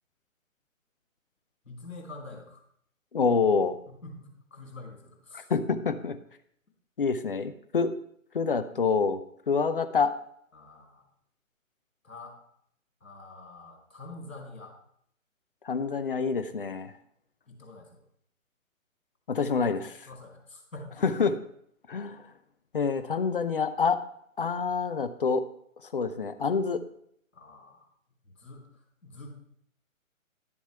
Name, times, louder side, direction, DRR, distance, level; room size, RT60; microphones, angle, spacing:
voice 1, 1.6-2.6 3.9-5.5 10.5-11.1 12.0-12.4 13.0-14.7 17.5-18.0 19.5-19.6 20.1-21.1 27.3-27.9 28.2-29.4, left 2 dB, 65° left, 0 dB, 3.2 m, -46 dB
voice 2, 3.1-3.8 5.5-6.2 7.0-7.9 8.3-9.2 9.5-10.1 15.6-16.9 19.3-20.1 21.0-21.4 21.9-22.2 22.7-24.0 24.4-25.4 25.9-26.8, left 5 dB, 40° left, 11 dB, 0.6 m, -27 dB
11.0 x 7.1 x 3.4 m, 0.68 s
figure-of-eight pair, 135°, 41 cm